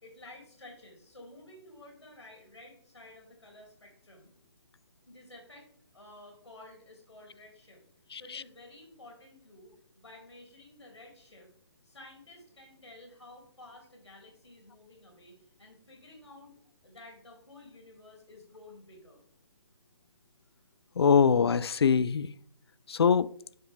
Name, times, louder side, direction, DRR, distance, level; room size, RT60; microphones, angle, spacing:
voice 1, 0.0-4.3 5.1-5.7 5.9-7.8 8.1-11.5 11.8-16.6 16.8-19.2, left 2 dB, 85° left, 2.7 m, -52 dB
voice 2, 8.1-8.4 21.0-22.3 22.9-23.3, left 6 dB, 60° left, 0.4 m, -23 dB
9.5 x 5.7 x 3.4 m
figure-of-eight pair, 140°, 15 cm